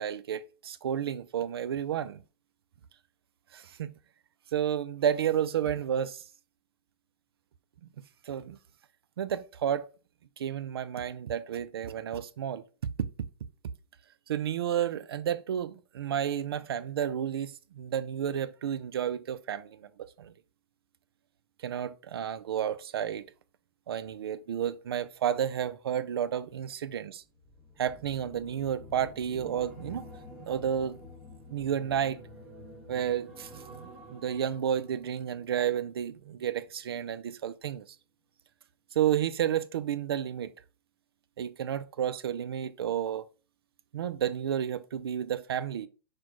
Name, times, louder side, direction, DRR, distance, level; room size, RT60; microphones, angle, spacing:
voice 1, 0.0-2.2 3.5-3.9 4.5-6.2 8.3-8.6 9.2-9.9 10.4-12.6 14.3-19.9 20.2-20.3 21.6-23.2 23.9-27.2 27.8-30.1 30.4-31.0 31.5-32.2 32.9-38.0 38.9-40.5 41.4-43.3 43.9-45.9, right 9 dB, 85° right, 0.4 m, -31 dB
sound 1, 27.4-36.7 37.1-37.4, left 1 dB, 5° right, 1.5 m, -49 dB
6.0 x 2.3 x 3.1 m
hypercardioid pair, 145°, 12 cm